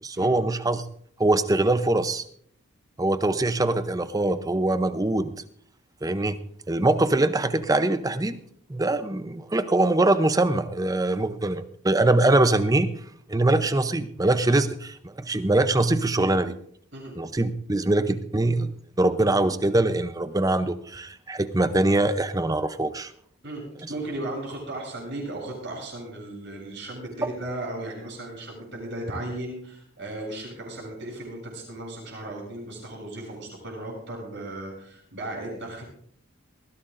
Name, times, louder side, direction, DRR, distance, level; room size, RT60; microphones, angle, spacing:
voice 1, 0.0-0.8 1.2-2.2 3.0-5.3 6.0-6.4 6.7-8.4 8.7-12.9 13.3-16.6 17.2-18.7 19.0-23.1, right 2 dB, 15° right, 11 dB, 0.6 m, -23 dB
voice 2, 23.4-35.8, right 1 dB, 55° right, -1 dB, 7.9 m, -36 dB
21.5 x 15.5 x 2.6 m, 0.63 s
head